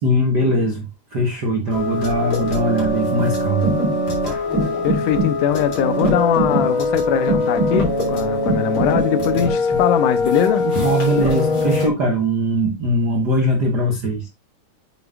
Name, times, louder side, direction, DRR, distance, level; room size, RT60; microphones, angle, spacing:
voice 1, 0.0-0.8 1.1-3.7 9.3-9.8 10.8-14.3, equal, 60° right, 1.1 m, -21 dB
sound 1, 1.7-11.9, left 1 dB, 40° left, 3.9 m, -21 dB
voice 2, 4.8-10.7, left 10 dB, 80° left, 2.3 m, -21 dB
8.1 x 7.1 x 2.5 m
omnidirectional pair, 3.7 m